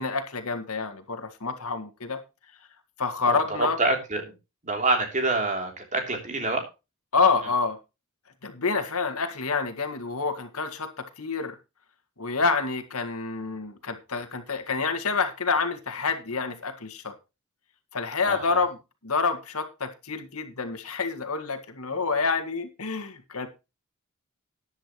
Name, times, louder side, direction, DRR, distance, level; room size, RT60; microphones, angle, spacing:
voice 1, 0.0-2.2 3.0-3.8 7.1-7.8 8.4-11.6 12.2-17.1 17.9-18.8 19.0-23.5, left 4 dB, 75° left, 7 dB, 1.9 m, -28 dB
voice 2, 3.3-4.3 4.6-6.6 18.3-18.6, right 2 dB, 35° right, 3 dB, 3.3 m, -27 dB
14.0 x 10.5 x 3.1 m, 0.28 s
head